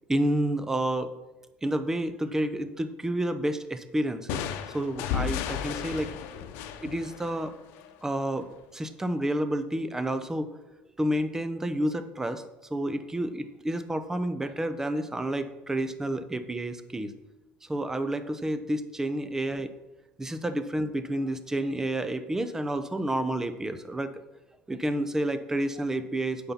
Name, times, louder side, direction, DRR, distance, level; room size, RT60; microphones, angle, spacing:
voice 1, 0.1-1.1 1.6-6.1 6.8-7.5 8.0-10.5 11.0-12.4 12.7-17.1 17.6-19.7 20.2-24.2 24.7-26.5, right 1 dB, 10° right, 10 dB, 0.8 m, -30 dB
sound 1, 4.3-8.0, left 9 dB, 75° left, 0.8 m, -34 dB
8.8 x 5.7 x 5.6 m, 1.0 s
supercardioid pair, 100°, 4 cm